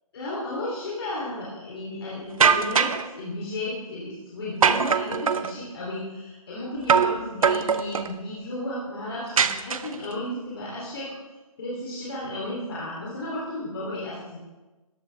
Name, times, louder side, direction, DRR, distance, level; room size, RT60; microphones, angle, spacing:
voice 1, 0.1-11.1 11.6-14.4, left 1 dB, 40° left, -6 dB, 2.9 m, -33 dB
sound 1, 2.4-3.1 4.6-5.5 6.9-7.2 7.4-8.1 9.4-10.1, right 6 dB, 65° right, 0.7 m, -21 dB
13.5 x 10.5 x 3.3 m, 1.2 s
hypercardioid pair, 170°, 19 cm